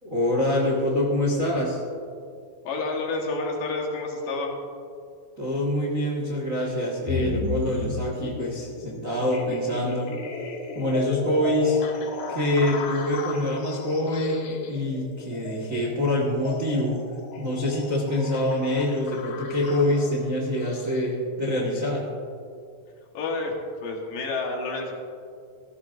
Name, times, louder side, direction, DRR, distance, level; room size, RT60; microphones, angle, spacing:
voice 1, 0.0-1.8 5.4-10.1 10.7-11.8 12.3-17.0 17.4-22.0, left 1 dB, 75° right, -3 dB, 0.7 m, -25 dB
voice 2, 2.6-4.5 23.1-24.9, left 3 dB, 65° left, 0 dB, 2.9 m, -29 dB
sound 1, 7.1-21.1, left 5 dB, 90° left, 3.2 m, -35 dB
18.5 x 14.0 x 2.6 m, 2.4 s
omnidirectional pair, 4.6 m